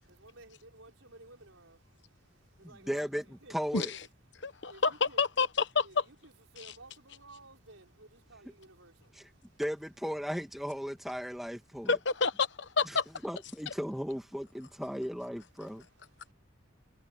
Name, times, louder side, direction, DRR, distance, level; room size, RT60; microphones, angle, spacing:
voice 1, 0.1-0.5 0.8-1.8 2.6-3.1 3.4-3.5 4.7-5.2 5.8-9.1, right 2 dB, 90° right, 5.7 m, -54 dB
voice 2, 2.6-3.9 8.5-8.6 9.1-9.3 9.6-12.0 12.8-13.0 13.2-15.9, equal, ahead, 2.2 m, -36 dB
voice 3, 4.4-6.0 6.6-6.8 11.9-13.0, left 4 dB, 60° left, 1.1 m, -29 dB
head